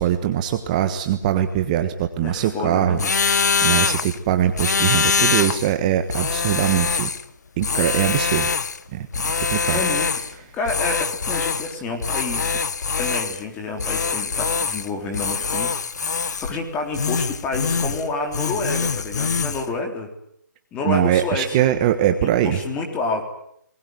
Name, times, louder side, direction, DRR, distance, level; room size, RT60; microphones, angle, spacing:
voice 1, 0.0-3.0 3.6-7.1 7.6-8.5 8.9-9.1 9.5-9.8 20.9-22.6, right 11 dB, 25° right, 8 dB, 1.3 m, -21 dB
voice 2, 2.2-3.1 9.7-12.5 13.0-15.7 16.0-20.1 20.7-21.6 22.2-23.2, left 3 dB, 10° left, 3 dB, 3.7 m, -29 dB
sound 1, 3.0-4.2 4.5-5.7 6.1-7.2 7.6-8.8 9.1-10.3 10.7-11.7 12.0-13.4 13.8-14.9 15.1-16.6 16.9-18.1 18.3-19.6, left 5 dB, 60° left, 1.4 m, -23 dB
27.0 x 21.0 x 9.4 m, 0.73 s
hypercardioid pair, 160°, 10 cm